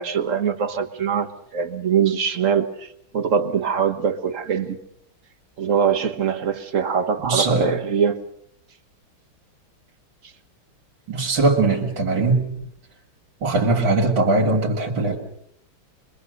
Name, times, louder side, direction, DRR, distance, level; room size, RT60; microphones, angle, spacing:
voice 1, 0.0-4.8 5.6-8.2, right 7 dB, 45° right, 1.3 m, -23 dB
voice 2, 7.2-7.8 11.1-12.4 13.4-15.2, right 3 dB, 60° right, 3.1 m, -20 dB
25.0 x 22.0 x 6.6 m
omnidirectional pair, 2.3 m